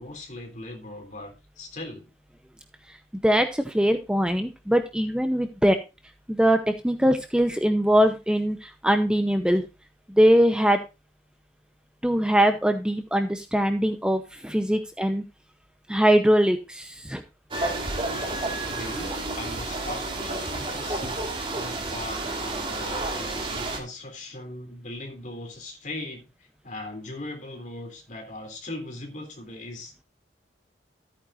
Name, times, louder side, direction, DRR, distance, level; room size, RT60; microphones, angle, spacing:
voice 1, 0.0-2.1 18.1-21.3 21.5-26.2 26.6-30.0, left 2 dB, 45° left, 3.4 m, -39 dB
voice 2, 3.2-5.8 6.3-9.6 10.1-10.8 12.0-15.2 15.9-17.2, equal, 5° right, 0.7 m, -22 dB
sound 1, 17.5-23.8, right 2 dB, 30° right, 2.6 m, -30 dB
14.0 x 9.0 x 2.6 m
head